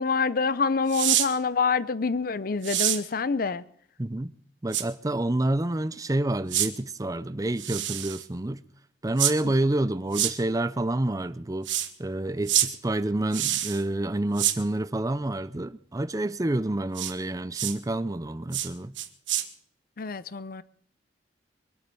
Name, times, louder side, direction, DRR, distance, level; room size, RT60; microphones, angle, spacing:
voice 1, 0.0-3.6 20.0-20.6, left 4 dB, 50° left, 0.6 m, -26 dB
sound 1, 0.9-1.3 2.6-3.0 4.7-4.8 6.5-6.7 7.6-8.2 9.2-9.3 10.1-10.3 11.6-11.9 12.5-12.7 13.3-13.8 14.4-14.6 16.9-17.1 17.5-17.7 18.5-18.7 19.0-19.4, right 12 dB, 80° right, 1.3 m, -26 dB
voice 2, 4.0-4.3 4.6-8.6 9.0-11.7 12.0-18.9, right 1 dB, 20° right, 0.5 m, -28 dB
23.0 x 8.5 x 6.9 m
head